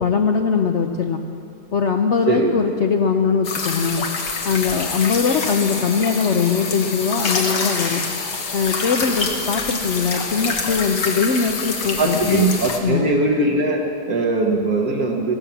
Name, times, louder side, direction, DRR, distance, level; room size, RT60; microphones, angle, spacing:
voice 1, 0.0-1.2 1.7-4.1 4.4-8.0 8.5-12.5 12.8-13.1, left 5 dB, 55° left, 4 dB, 0.8 m, -21 dB
sound 1, 3.4-12.8, left 4 dB, 90° left, 2.0 m, -26 dB
voice 2, 12.0-15.3, right 2 dB, 65° right, -1 dB, 1.7 m, -20 dB
15.5 x 13.0 x 7.0 m, 2.5 s
omnidirectional pair, 1.7 m